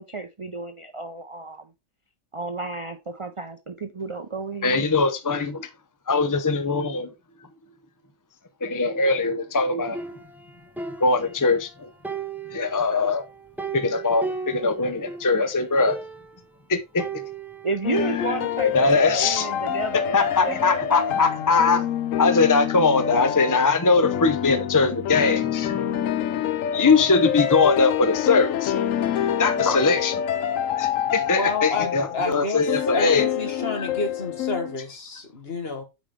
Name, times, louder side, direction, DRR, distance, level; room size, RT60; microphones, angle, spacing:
voice 1, 0.0-1.7 2.3-4.9 17.6-21.1 29.6-29.9, right 3 dB, 35° right, 0.5 m, -32 dB
voice 2, 4.6-5.7 6.1-7.1 8.6-10.0 11.0-11.9 12.5-13.2 13.7-16.0 16.7-17.2 18.7-19.5 20.1-21.9 22.2-25.8 26.7-28.7 29.4-30.2 30.8-33.3 33.8-33.9, left 4 dB, 25° left, 0.4 m, -21 dB
sound 1, 9.9-11.7 12.0-15.3 15.6-15.7 15.9-16.5 17.0-19.0 19.4-21.1, right 4 dB, ahead, 0.7 m, -37 dB
sound 2, 17.8-34.8, left 10 dB, 75° left, 1.0 m, -27 dB
voice 3, 31.4-32.6 32.9-35.8, left 3 dB, 50° left, 1.9 m, -30 dB
8.5 x 5.0 x 3.6 m
omnidirectional pair, 1.4 m